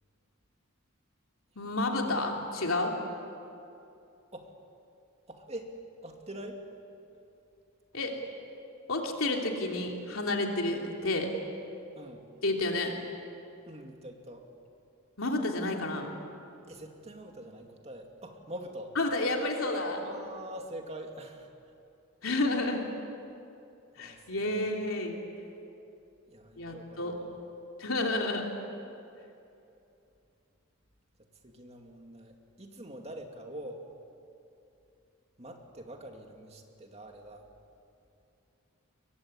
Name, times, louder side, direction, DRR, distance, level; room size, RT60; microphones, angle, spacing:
voice 1, 1.5-2.9 7.9-8.2 8.9-11.3 12.4-12.9 15.2-16.1 19.0-20.0 22.2-22.8 24.0-25.2 26.6-27.2 27.8-28.5, left 2 dB, 75° left, 1 dB, 3.2 m, -30 dB
voice 2, 5.3-5.8 6.0-6.6 12.0-12.3 13.7-14.5 16.7-19.0 20.0-21.5 24.0-24.7 26.3-27.2 31.4-33.9 35.4-37.5, right 1 dB, 30° right, 3 dB, 2.4 m, -44 dB
24.0 x 22.5 x 9.8 m, 2.7 s
head